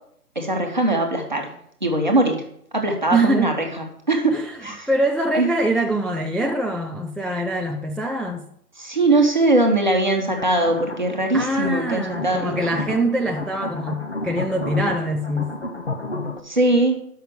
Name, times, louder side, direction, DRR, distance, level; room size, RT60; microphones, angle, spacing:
voice 1, 0.3-1.5 1.8-2.4 2.7-4.9 5.3-5.5 8.8-12.6 16.4-17.0, right 2 dB, 30° right, 2 dB, 1.0 m, -21 dB
voice 2, 3.1-3.5 4.3-4.6 4.9-8.5 11.3-15.5, right 1 dB, ahead, 1 dB, 0.4 m, -23 dB
sound 1, 10.2-16.4, left 2 dB, 45° left, 0.8 m, -32 dB
7.0 x 5.7 x 6.3 m, 0.70 s
figure-of-eight pair, 165°, 46 cm